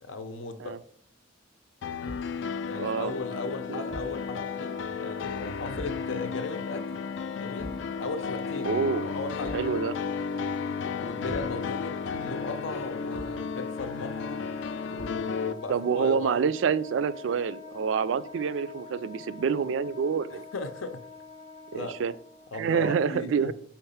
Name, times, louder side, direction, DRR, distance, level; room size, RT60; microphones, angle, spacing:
voice 1, 0.0-0.8 2.7-7.0 7.4-8.7 9.0-9.8 10.9-14.4 14.9-16.4 20.3-21.1 21.7-22.0 22.5-23.5, left 3 dB, 90° left, 8 dB, 0.7 m, -37 dB
sound 1, 1.8-15.5, left 5 dB, 65° left, 0.3 m, -34 dB
Thump thud, 2.0-2.4 3.9-4.2 5.7-6.1 7.6-7.9 9.4-9.8 11.3-11.6 13.1-13.5 15.0-15.3, equal, 10° right, 0.4 m, -42 dB
voice 2, 2.7-3.1 3.7-3.8 8.6-9.1 9.5-9.9 15.7-20.5 21.7-22.1 22.5-23.5, right 6 dB, 75° right, 15 dB, 0.3 m, -27 dB
Wind instrument woodwind instrument, 3.0-22.5, left 4 dB, 25° left, 0.7 m, -45 dB
4.5 x 3.9 x 5.5 m, 0.62 s
head